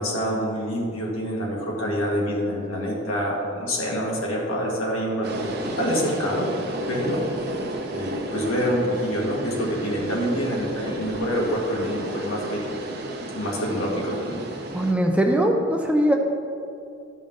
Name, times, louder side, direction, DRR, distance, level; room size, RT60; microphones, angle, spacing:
voice 1, 0.0-6.5 6.9-7.2 7.9-12.7 13.3-14.4, equal, 80° left, -3 dB, 1.9 m, -26 dB
sound 1, 5.2-14.9, right 1 dB, 50° right, 0.9 m, -32 dB
voice 2, 14.7-16.2, equal, 5° right, 2 dB, 0.5 m, -20 dB
12.5 x 5.3 x 3.9 m, 2.6 s
head